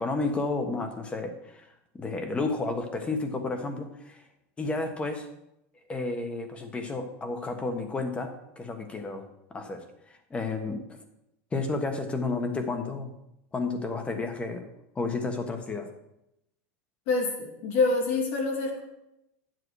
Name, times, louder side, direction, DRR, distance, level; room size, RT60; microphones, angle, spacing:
voice 1, 0.0-1.7 1.9-4.2 4.6-5.3 5.9-10.8 11.5-13.1 13.5-14.7 14.9-15.9, left 3 dB, 15° left, 6 dB, 1.4 m, -31 dB
voice 2, 17.1-18.8, left 3 dB, 65° left, 0 dB, 3.4 m, -26 dB
10.5 x 7.8 x 4.8 m, 0.84 s
supercardioid pair, 140°, 8 cm